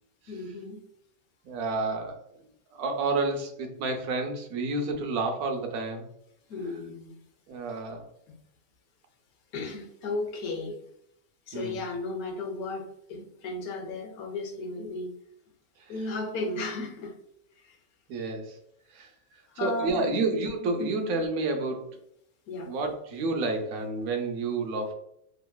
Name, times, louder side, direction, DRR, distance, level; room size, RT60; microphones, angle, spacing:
voice 1, 0.3-0.8 6.5-7.2 8.3-8.4 9.5-10.8 11.5-15.1 15.9-17.1 17.6-17.8 19.5-20.2 20.8-20.9 22.5-22.7, left 2 dB, 85° left, 3 dB, 1.1 m, -35 dB
voice 2, 1.4-2.2 2.7-6.1 7.5-8.1 11.5-11.8 18.1-18.6 18.9-19.1 19.6-22.0 22.7-24.9, right 3 dB, 85° right, 4 dB, 1.1 m, -30 dB
2.9 x 2.6 x 2.2 m, 0.74 s
omnidirectional pair, 1.5 m